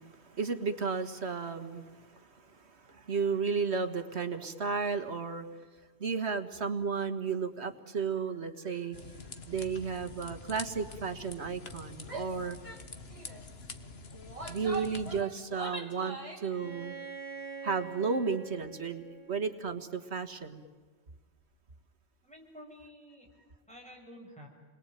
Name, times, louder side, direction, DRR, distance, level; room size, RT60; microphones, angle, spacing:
voice 1, 0.0-5.5 6.0-9.0 9.5-12.6 14.5-17.0 17.6-20.6, right 5 dB, 80° right, 8 dB, 1.9 m, -33 dB
sound 1, 8.9-15.2, left 3 dB, 65° left, 1.8 m, -46 dB
Female speech woman speaking / Yell, 12.0-12.3 12.6-12.8 13.1-13.4 14.1-16.5, right 3 dB, 30° right, 3.0 m, -42 dB
Bowed string instrument, 16.5-20.3, right 5 dB, 55° right, 2.5 m, -45 dB
voice 2, 22.2-23.3 23.7-24.5, equal, 5° left, 0 dB, 6.6 m, -50 dB
30.0 x 22.0 x 9.2 m, 1.4 s
omnidirectional pair, 1.1 m